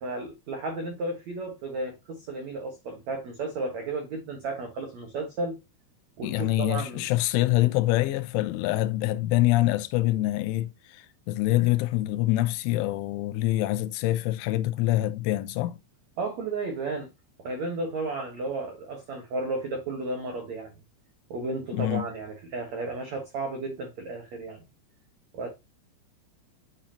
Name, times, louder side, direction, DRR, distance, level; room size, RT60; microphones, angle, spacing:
voice 1, 0.0-5.6 6.2-7.0 16.2-17.1 17.4-20.7 21.3-24.6 25.3-25.5, right 2 dB, 85° right, 1.5 m, -33 dB
voice 2, 6.2-15.8 21.7-22.1, left 16 dB, 90° left, 3.1 m, -25 dB
9.7 x 4.2 x 2.7 m
omnidirectional pair, 5.5 m